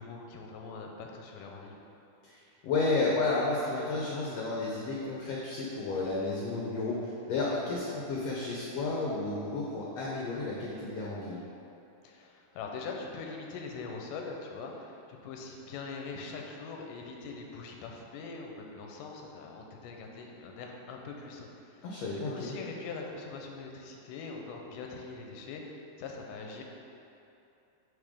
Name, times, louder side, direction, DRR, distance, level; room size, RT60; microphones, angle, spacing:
voice 1, 0.0-1.8 12.0-21.9 22.3-26.6, left 4 dB, 90° left, 1 dB, 2.2 m, -42 dB
voice 2, 2.6-11.4 21.8-22.5, left 3 dB, 75° left, -4 dB, 1.5 m, -32 dB
9.8 x 4.0 x 3.6 m, 2.8 s
omnidirectional pair, 3.7 m